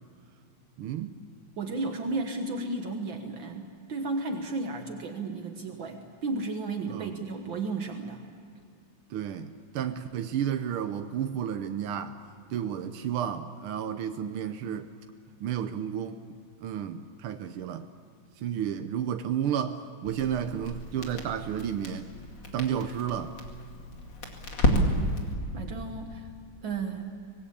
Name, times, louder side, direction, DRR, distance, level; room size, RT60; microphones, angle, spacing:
voice 1, 0.8-1.2 6.9-7.2 9.1-12.2 12.5-14.9 15.4-16.2 16.6-17.9 18.4-22.1 22.5-23.4, right 9 dB, 85° right, 8 dB, 1.7 m, -32 dB
voice 2, 1.6-8.2 24.7-25.0 25.5-26.3 26.6-27.0, right 3 dB, 65° right, 4 dB, 2.1 m, -33 dB
Crackle, 20.1-25.3, left 1 dB, 60° left, 3.1 m, -31 dB
25.0 x 20.0 x 8.5 m, 2.4 s
omnidirectional pair, 2.3 m